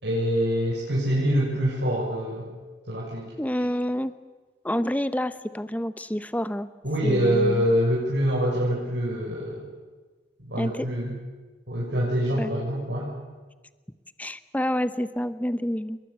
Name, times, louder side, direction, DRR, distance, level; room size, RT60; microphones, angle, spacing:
voice 1, 0.0-2.5 2.9-3.3 6.8-9.7 10.4-11.2 11.7-13.1, equal, 75° right, -6 dB, 6.8 m, -25 dB
voice 2, 3.4-4.1 4.6-6.7 7.0-7.6 10.6-10.9 12.4-12.5 14.2-16.0, equal, 10° left, 12 dB, 0.9 m, -28 dB
28.5 x 22.5 x 8.2 m, 1.3 s
head